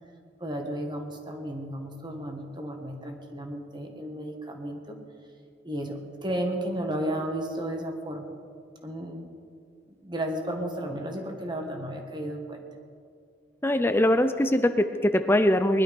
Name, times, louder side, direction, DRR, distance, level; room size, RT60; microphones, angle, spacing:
voice 1, 0.4-5.0 5.6-8.3 8.8-9.2 10.0-12.6, right 1 dB, 25° right, 3 dB, 1.7 m, -33 dB
voice 2, 13.6-15.8, left 1 dB, 10° left, 9 dB, 0.5 m, -22 dB
20.5 x 11.5 x 5.4 m, 2.3 s
head